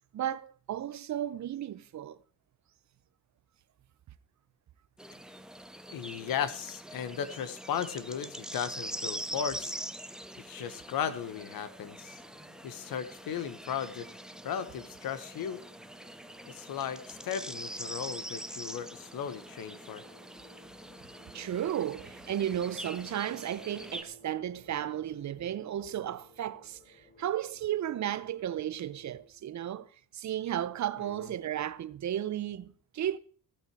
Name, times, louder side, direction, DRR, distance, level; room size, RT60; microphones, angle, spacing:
voice 1, 0.1-2.2 21.3-29.9 30.1-33.2, right 11 dB, 55° right, 0.7 m, -34 dB
sound 1, 5.0-24.0, right 1 dB, ahead, 0.7 m, -44 dB
voice 2, 5.9-9.8 10.4-12.2 12.6-14.1 14.4-15.6 16.4-20.0 31.0-31.3, left 8 dB, 80° left, 1.3 m, -36 dB
sound 2, 11.7-29.3, left 1 dB, 25° left, 3.5 m, -58 dB
15.0 x 9.1 x 4.7 m
cardioid pair, 125°, 34 cm